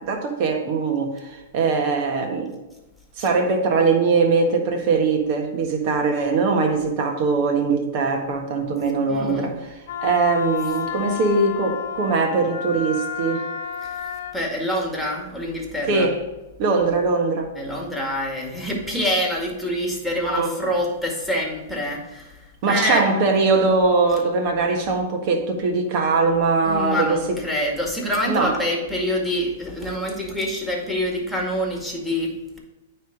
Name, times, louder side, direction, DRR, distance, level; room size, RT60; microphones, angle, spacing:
voice 1, 0.0-2.5 3.2-9.5 10.0-13.4 15.9-16.2 16.6-17.5 20.2-20.5 22.6-27.2 28.3-28.5, right 4 dB, 50° right, 3 dB, 1.5 m, -21 dB
voice 2, 9.1-9.5 13.8-14.1 14.3-16.1 17.6-23.0 26.6-32.6, equal, ahead, -1 dB, 2.0 m, -26 dB
Wind instrument woodwind instrument, 9.9-14.4, left 7 dB, 65° left, 0.8 m, -31 dB
9.2 x 3.5 x 5.3 m, 1.0 s
hypercardioid pair, 125°, 0 cm